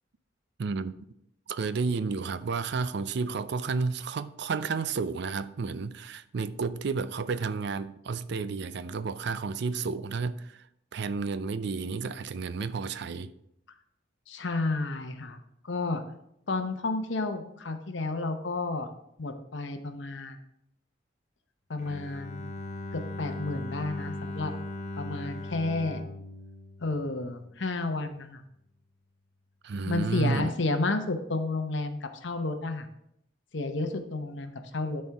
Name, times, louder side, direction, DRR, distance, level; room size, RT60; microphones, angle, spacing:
voice 1, 0.6-0.9 1.5-10.6 10.9-13.3 29.6-30.5, right 4 dB, 65° right, 0.4 m, -31 dB
voice 2, 14.3-15.4 15.6-16.0 16.5-18.9 19.2-20.4 21.7-22.4 22.9-24.5 25.0-26.0 26.8-28.4 29.9-32.9 33.5-35.0, left 3 dB, 70° left, 0.9 m, -31 dB
Bowed string instrument, 21.8-27.7, left 2 dB, 40° left, 0.6 m, -39 dB
12.5 x 4.4 x 3.5 m
head